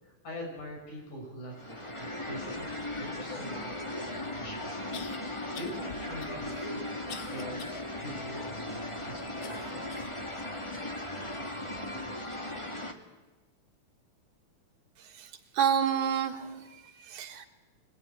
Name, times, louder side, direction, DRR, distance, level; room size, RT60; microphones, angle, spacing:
voice 1, 0.0-4.8 5.2-9.8, equal, 80° left, 1 dB, 7.9 m, -44 dB
sound 1, 1.5-12.9, left 1 dB, 15° left, 1.0 m, -37 dB
sound 2, 3.9-4.0 4.9-5.2 5.5-5.8 6.2-7.8 8.3-8.4 9.4-10.2 10.7-10.9 11.6-11.7, left 7 dB, 60° left, 1.2 m, -46 dB
voice 2, 15.1-17.5, right 8 dB, 75° right, 5 dB, 3.1 m, -30 dB
23.0 x 20.5 x 9.5 m, 1.1 s
omnidirectional pair, 3.5 m